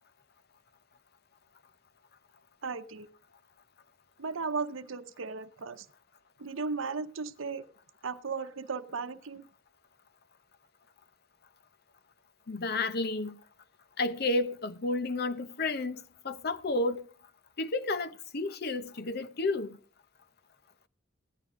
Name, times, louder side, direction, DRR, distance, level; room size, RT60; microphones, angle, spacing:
voice 1, 2.6-3.1 4.2-5.9 6.4-7.7 8.0-9.4, right 4 dB, 85° right, 0.8 m, -36 dB
voice 2, 12.5-13.3 14.0-17.0 17.6-19.7, left 2 dB, 50° left, 0.8 m, -31 dB
14.5 x 10.5 x 3.7 m
head